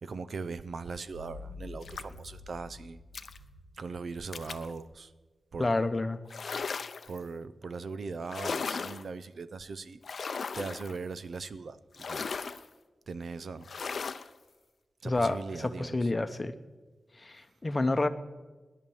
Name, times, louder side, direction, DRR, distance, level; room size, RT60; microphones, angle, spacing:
voice 1, 0.0-3.0 3.8-5.1 5.5-5.8 7.1-10.0 10.5-12.2 13.1-13.7 15.0-16.1, right 4 dB, 65° right, 14 dB, 0.7 m, -39 dB
sound 1, 1.1-4.6, left 3 dB, 85° right, 5.9 m, -48 dB
sound 2, 1.8-2.3 3.1-3.4 4.3-4.7 6.3-7.2 8.3-9.1 10.0-11.0 11.9-12.7 13.6-14.3, left 5 dB, 60° left, 0.6 m, -36 dB
voice 2, 5.6-6.2 15.0-16.5 17.2-18.1, left 2 dB, 25° left, 9 dB, 0.9 m, -29 dB
17.5 x 11.0 x 7.2 m, 1.2 s
wide cardioid pair, 125°, 0 cm